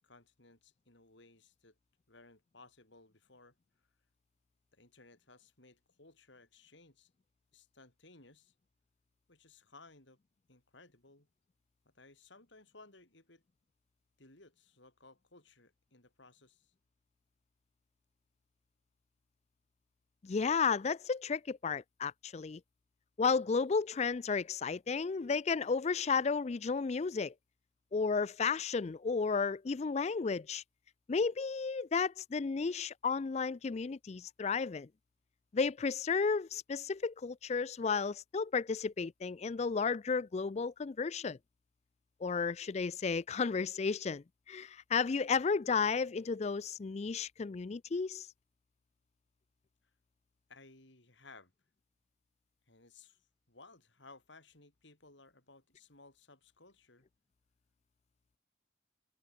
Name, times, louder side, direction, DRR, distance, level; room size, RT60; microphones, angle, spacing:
voice 1, 0.0-1.8 2.1-3.6 4.7-7.1 7.5-8.5 9.3-10.2 10.5-11.3 11.8-13.4 14.2-16.7 45.7-45.9 50.5-51.5 52.7-57.1, left 3 dB, 65° left, 4.7 m, -59 dB
voice 2, 20.2-22.6 23.2-27.3 27.9-30.6 31.1-34.9 35.5-41.4 42.2-48.3, left 5 dB, 35° left, 0.4 m, -33 dB
head